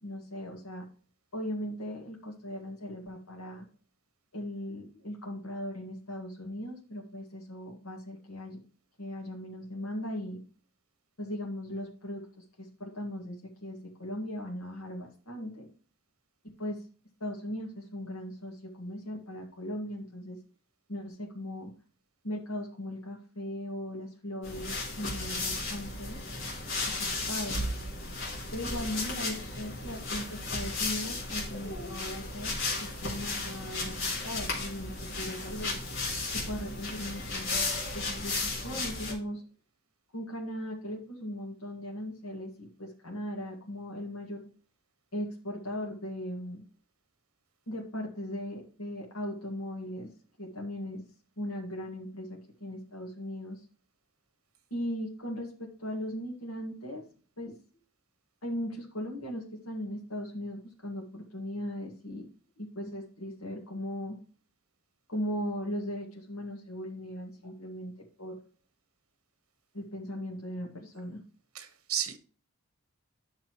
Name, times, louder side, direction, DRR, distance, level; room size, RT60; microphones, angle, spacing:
voice 1, 0.0-0.8 1.3-3.7 4.3-8.6 9.0-10.4 11.2-15.7 16.4-16.8 17.2-20.4 20.9-21.7 22.2-26.2 26.9-27.7 28.5-34.0 34.2-35.8 36.3-39.4 40.1-44.5 45.1-46.6 47.7-50.1 50.4-51.0 51.4-53.6 54.7-57.0 57.4-57.5 58.4-62.3 62.6-64.2 65.1-68.4 69.7-71.2, equal, 80° left, 1.9 m, -38 dB
sound 1, 24.4-39.1, left 2 dB, 60° left, 3.0 m, -34 dB
voice 2, 71.5-72.2, right 9 dB, 80° right, 1.3 m, -33 dB
9.9 x 6.6 x 3.1 m
head